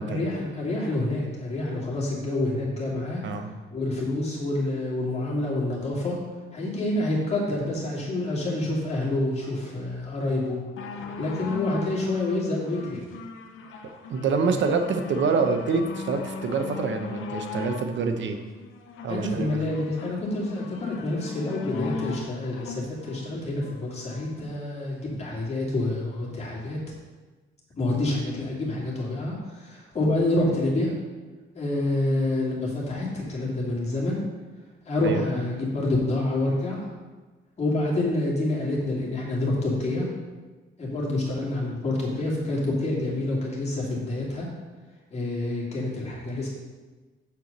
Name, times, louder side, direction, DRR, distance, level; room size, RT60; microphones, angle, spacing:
voice 1, 0.0-3.2 3.7-6.2 6.5-10.6 11.2-13.0 14.4-14.6 19.1-26.8 27.8-30.9 31.5-34.2 34.9-36.9 37.6-40.1 40.8-44.5 45.1-46.5, left 2 dB, 30° left, -4 dB, 2.5 m, -27 dB
sound 1, 10.8-24.3 25.1-25.2, left 5 dB, 75° left, 0.9 m, -39 dB
voice 2, 14.1-18.4 19.0-19.6 35.0-35.2, right 4 dB, 60° right, 6 dB, 0.9 m, -26 dB
6.9 x 4.7 x 6.6 m, 1.3 s
cardioid pair, 130°, 21 cm